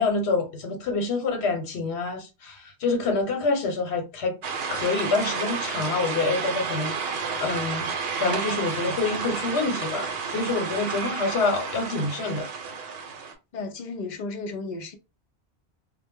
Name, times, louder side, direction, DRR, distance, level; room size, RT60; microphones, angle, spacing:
voice 1, 0.0-4.4 4.7-7.9 8.2-12.5, left 3 dB, 80° left, 1.0 m, -27 dB
sound 1, 4.4-13.3, right 5 dB, 70° right, 0.8 m, -31 dB
voice 2, 13.5-15.0, left 3 dB, 55° left, 0.6 m, -34 dB
2.1 x 2.1 x 3.4 m
omnidirectional pair, 1.1 m